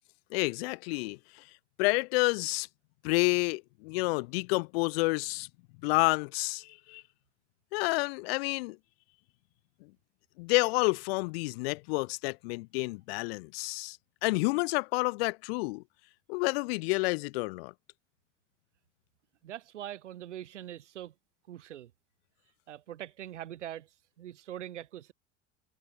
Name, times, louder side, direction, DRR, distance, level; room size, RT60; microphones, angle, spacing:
voice 1, 0.3-1.5 1.8-2.7 3.0-5.5 5.8-7.0 7.7-8.8 9.8-9.9 10.4-15.8 16.3-17.7, left 26 dB, 55° left, 0.8 m, -29 dB
voice 2, 19.4-21.1 21.5-21.9 22.7-23.9 24.2-25.1, right 11 dB, 70° right, 2.3 m, -42 dB
figure-of-eight pair, 70°, 37 cm